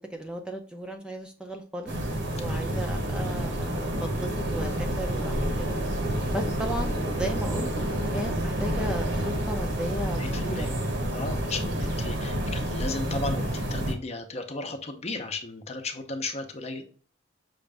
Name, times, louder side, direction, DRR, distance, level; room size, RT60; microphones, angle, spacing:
voice 1, 0.1-1.9 2.3-5.8 6.3-7.7 8.1-10.8, right 1 dB, 5° right, 3 dB, 0.5 m, -35 dB
sound 1, 1.9-13.9, right 1 dB, 65° right, 1.1 m, -29 dB
voice 2, 2.5-2.8 10.2-10.7 11.1-16.8, left 3 dB, 35° left, 5 dB, 0.7 m, -35 dB
6.1 x 2.5 x 3.3 m, 0.41 s
head